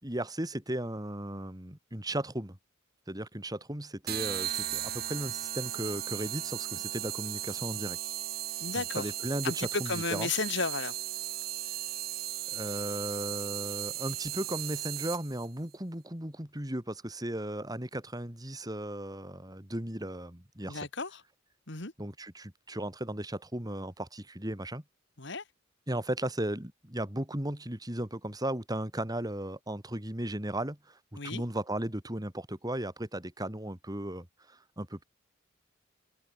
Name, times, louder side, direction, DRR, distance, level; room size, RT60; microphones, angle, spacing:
voice 1, 0.0-2.6 3.1-8.0 8.7-10.3 12.5-20.9 22.0-24.8 25.9-35.0, right 1 dB, 20° right, 3.6 m, -36 dB
sound 1, 4.1-15.5, right 13 dB, 50° right, 1.3 m, -36 dB
voice 2, 8.6-9.1 9.4-11.0 20.6-21.2 21.7-21.9 25.2-25.4 31.2-31.4, left 4 dB, 60° left, 2.8 m, -33 dB
head